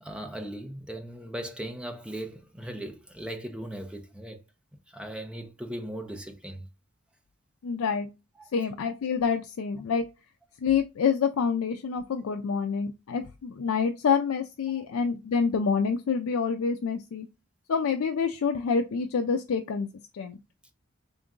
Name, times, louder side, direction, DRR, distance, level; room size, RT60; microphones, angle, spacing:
voice 1, 0.0-4.4 4.9-6.6 8.4-8.5, right 1 dB, 5° right, 0.6 m, -38 dB
voice 2, 7.6-8.1 8.5-10.1 10.6-17.3 17.7-19.9 20.1-20.4, left 6 dB, 75° left, 0.4 m, -27 dB
3.7 x 2.6 x 3.6 m
head